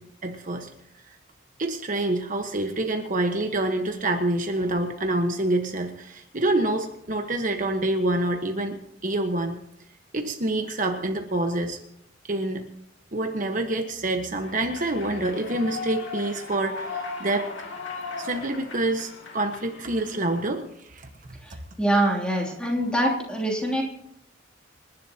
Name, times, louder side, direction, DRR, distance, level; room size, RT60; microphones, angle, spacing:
voice 1, 0.2-0.7 1.6-9.6 10.1-11.8 12.3-12.6 13.1-17.5 18.2-21.1, right 2 dB, 40° right, 4 dB, 1.3 m, -27 dB
Human voice / Clapping / Cheering, 14.4-20.4, left 4 dB, 75° left, 2.6 m, -37 dB
voice 2, 21.4-23.8, right 1 dB, 5° left, -2 dB, 3.0 m, -24 dB
27.5 x 11.5 x 2.9 m, 0.78 s
head